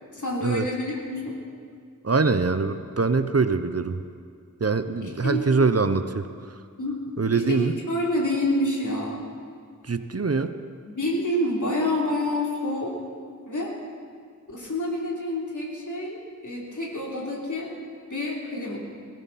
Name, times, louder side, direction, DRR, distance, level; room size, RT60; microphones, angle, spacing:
voice 1, 0.1-1.3 5.0-5.5 6.8-7.0 7.3-9.2 10.8-12.9 13.5-13.7 14.5-17.7 18.1-18.8, left 1 dB, 65° left, -3 dB, 3.3 m, -28 dB
voice 2, 2.0-4.0 4.6-6.2 7.2-7.7 9.9-10.5, right 4 dB, 45° right, 10 dB, 0.7 m, -23 dB
18.0 x 16.5 x 4.2 m, 2.2 s
wide cardioid pair, 45°, 33 cm